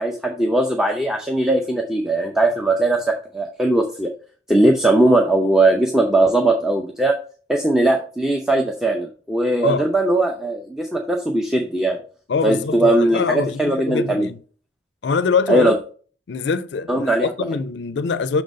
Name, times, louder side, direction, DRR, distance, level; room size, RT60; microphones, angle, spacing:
voice 1, 0.0-4.1 4.5-7.2 7.5-12.0 12.4-14.3 15.5-15.8 16.9-17.3, right 2 dB, 5° right, 0.6 m, -19 dB
voice 2, 12.3-14.4 15.0-15.7 16.3-18.4, left 5 dB, 75° left, 0.4 m, -23 dB
5.9 x 3.9 x 5.1 m
head